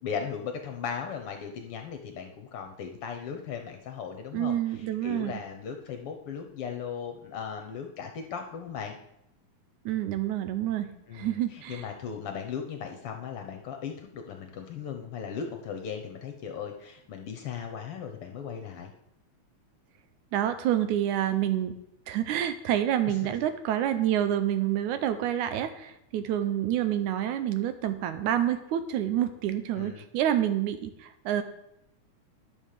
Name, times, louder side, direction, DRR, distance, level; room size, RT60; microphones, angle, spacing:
voice 1, 0.0-9.0 11.1-18.9 23.1-23.3 29.7-30.0, left 7 dB, 65° left, 4 dB, 1.6 m, -37 dB
voice 2, 4.3-5.4 9.9-11.8 20.3-21.8 22.1-31.4, right 11 dB, 85° right, 10 dB, 2.3 m, -28 dB
11.0 x 5.8 x 6.6 m, 0.81 s
omnidirectional pair, 3.4 m